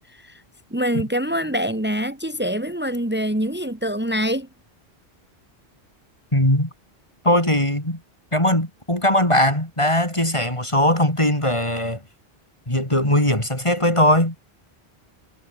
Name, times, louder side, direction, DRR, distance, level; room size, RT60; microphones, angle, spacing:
voice 1, 0.1-0.4 0.7-4.5, equal, 10° right, 2.7 m, -25 dB
voice 2, 6.3-6.7 7.2-8.0 8.3-12.0 12.7-14.3, left 1 dB, 25° left, 5.7 m, -20 dB
omnidirectional pair, 1.1 m